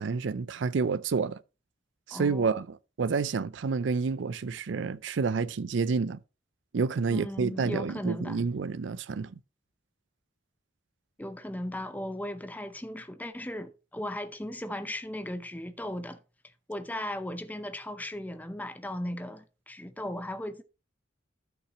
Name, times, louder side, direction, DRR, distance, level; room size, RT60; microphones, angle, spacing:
voice 1, 0.0-1.4 2.1-6.2 6.7-9.3, right 5 dB, 70° right, 0.4 m, -29 dB
voice 2, 2.1-2.6 7.1-8.4 11.2-16.2 16.7-20.6, left 1 dB, 10° left, 0.6 m, -37 dB
13.0 x 5.8 x 2.9 m
head